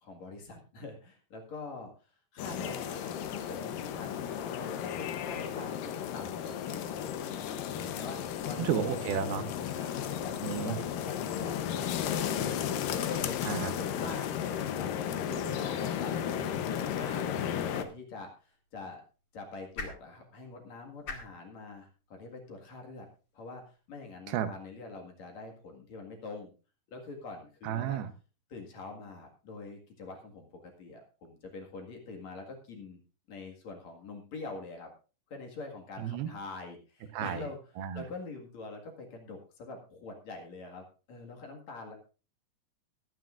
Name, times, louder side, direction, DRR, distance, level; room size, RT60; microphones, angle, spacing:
voice 1, 0.0-8.7 9.7-13.4 13.8-17.4 17.7-19.0 19.3-23.1 23.3-26.5 26.9-28.0 28.5-33.0 33.3-34.9 35.3-42.0, left 3 dB, 55° left, 2 dB, 2.9 m, -45 dB
sound 1, 2.4-17.8, left 9 dB, 75° left, 2.6 m, -34 dB
voice 2, 8.6-9.5 10.4-10.8 13.4-13.7 24.3-24.5 27.6-28.1 36.0-36.3 37.1-37.4 37.8-38.0, right 9 dB, 85° right, 10 dB, 3.0 m, -32 dB
sound 2, 17.9-24.2, left 3 dB, 35° left, 2.4 m, -49 dB
21.5 x 9.4 x 2.5 m, 0.34 s
omnidirectional pair, 4.3 m